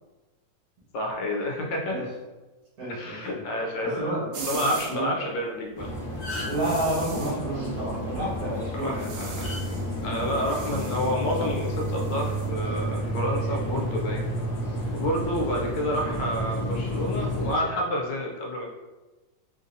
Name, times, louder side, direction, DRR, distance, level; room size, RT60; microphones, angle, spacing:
voice 1, 0.9-2.1 2.9-4.1 4.5-5.9 8.7-9.5 10.0-14.2 14.9-18.7, left 1 dB, 85° left, 0 dB, 1.4 m, -29 dB
voice 2, 2.8-3.4 3.8-5.1 6.4-9.1, right 1 dB, 55° right, -7 dB, 1.8 m, -30 dB
sound 1, 4.3-5.0 6.4-7.4 8.8-9.9 10.1-12.5, right 4 dB, 85° right, 1.3 m, -41 dB
sound 2, 5.7-5.8 6.0-6.7 8.3-8.6 9.4-9.6 10.6-10.9, left 2 dB, 60° left, 1.2 m, -35 dB
sound 3, 5.7-17.5, equal, 20° left, 0.5 m, -31 dB
3.6 x 2.6 x 2.6 m, 1.2 s
omnidirectional pair, 2.0 m